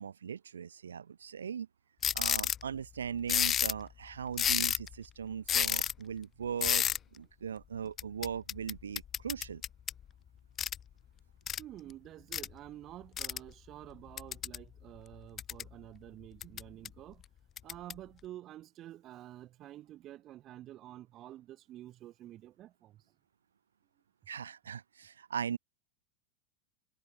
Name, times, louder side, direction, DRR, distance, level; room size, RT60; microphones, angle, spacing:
voice 1, 0.0-1.7 2.1-6.9 7.1-9.6 24.3-25.6, right 7 dB, 70° right, 3.3 m, -39 dB
sound 1, 2.0-2.6 3.3-3.8 4.3-4.9 5.5-5.9 6.6-7.0 8.0-10.0 10.6-10.8 11.5-11.6 12.3-12.5 13.2-13.4 14.2-14.6 15.1-15.7 16.4-16.9 17.6-17.9, left 9 dB, 25° left, 1.1 m, -31 dB
voice 2, 11.6-17.2 17.6-23.0, right 13 dB, 35° right, 4.0 m, -49 dB
figure-of-eight pair, 90°, 0 cm